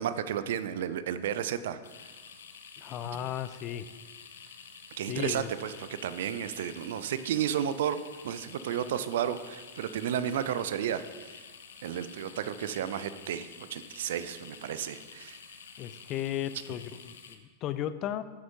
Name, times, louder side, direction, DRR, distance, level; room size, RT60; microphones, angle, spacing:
voice 1, 0.0-1.8 5.0-8.0 8.2-11.4 11.8-15.4, right 9 dB, 60° right, 13 dB, 0.4 m, -32 dB
sound 1, 1.8-17.4, left 6 dB, 65° left, 0.7 m, -49 dB
voice 2, 2.8-3.9 5.1-5.5 15.8-18.2, left 11 dB, 35° left, 13 dB, 0.4 m, -35 dB
10.5 x 7.7 x 2.7 m, 1.4 s
figure-of-eight pair, 90°, 0 cm